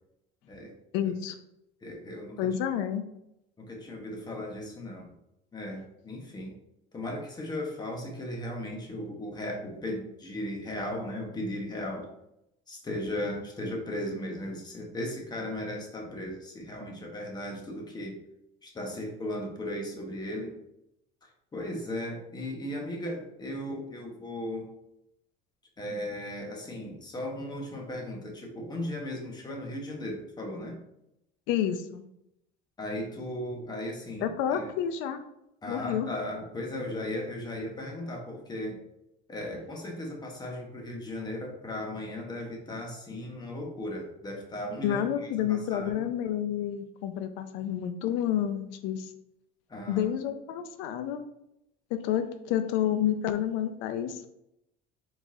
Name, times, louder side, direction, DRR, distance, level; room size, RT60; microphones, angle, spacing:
voice 1, 0.9-1.4 2.4-3.0 31.5-32.0 34.2-35.2 35.7-36.1 44.8-49.1 49.9-51.2 51.9-54.2, left 10 dB, 75° left, 9 dB, 0.6 m, -29 dB
voice 2, 1.8-2.4 3.6-5.1 5.5-6.5 6.9-12.1 12.7-18.2 18.6-20.5 21.5-24.7 25.8-30.8 32.8-34.7 35.6-38.8 39.3-45.0 45.4-46.1 49.7-50.1, left 1 dB, 20° left, 0 dB, 1.2 m, -36 dB
4.9 x 3.8 x 2.7 m, 0.83 s
cardioid pair, 120°, 20 cm